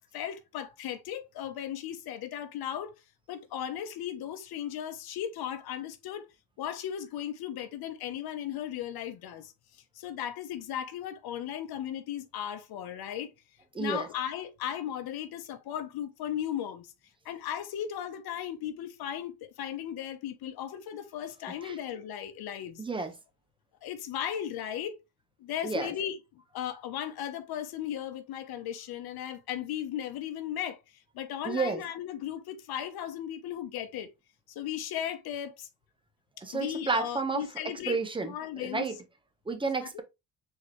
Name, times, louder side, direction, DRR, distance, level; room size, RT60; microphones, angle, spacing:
voice 1, 0.0-2.9 3.3-6.3 6.6-9.5 9.9-13.3 13.8-16.9 17.2-22.8 23.8-25.0 25.4-34.1 34.5-35.7 36.5-38.0 38.2-38.9 39.8-40.0, left 10 dB, 70° left, 0.9 m, -36 dB
voice 2, 13.7-14.1 21.6-21.8 22.8-23.1 25.6-25.9 31.4-31.8 36.4-39.0 39.5-40.0, right 4 dB, 15° right, 0.9 m, -31 dB
4.4 x 3.8 x 3.1 m
cardioid pair, 110°, 38 cm